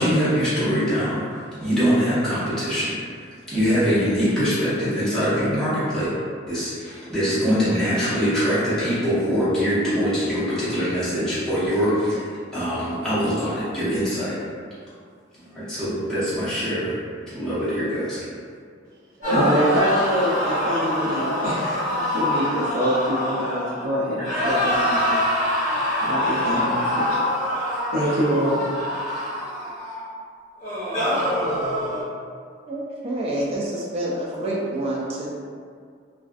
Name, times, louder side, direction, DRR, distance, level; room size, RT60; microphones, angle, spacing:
voice 1, 0.0-3.0 3.5-6.1 6.5-12.2 12.5-14.4 15.4-16.9 17.3-18.2, equal, 5° left, -14 dB, 0.7 m, -23 dB
sound 1, 19.2-23.9 24.2-30.1 30.6-32.0, left 1 dB, 40° left, 1.0 m, -25 dB
voice 2, 19.2-25.2 26.0-27.2 27.9-28.6, equal, 85° right, -11 dB, 0.6 m, -24 dB
voice 3, 32.7-35.3, right 1 dB, 30° right, -4 dB, 0.3 m, -27 dB
2.3 x 2.2 x 2.4 m, 2.1 s
head